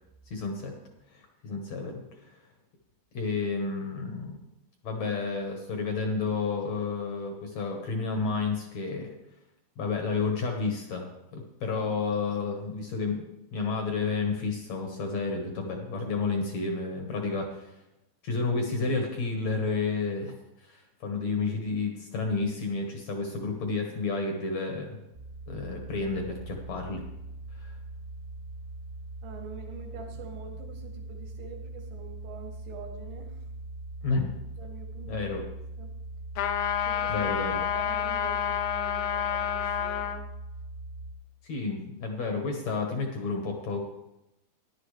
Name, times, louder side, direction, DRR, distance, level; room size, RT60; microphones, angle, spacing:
voice 1, 0.3-0.7 1.1-2.4 3.1-4.4 4.8-9.1 9.8-17.7 18.2-20.3 20.6-25.0 25.5-27.1 27.5-27.7 34.0-34.4 35.1-35.4 37.1-37.6 41.4-43.8, left 4 dB, 70° left, 2 dB, 1.6 m, -31 dB
sound 1, 25.1-41.1, right 2 dB, 35° right, 0.7 m, -41 dB
voice 2, 29.2-33.5 34.6-35.2 35.8-35.9 36.8-37.3 37.6-40.1, right 4 dB, 85° right, 2 dB, 4.2 m, -45 dB
sound 2, 36.4-40.2, left 9 dB, 85° left, 3.1 m, -29 dB
15.0 x 11.0 x 3.3 m, 0.90 s
omnidirectional pair, 5.1 m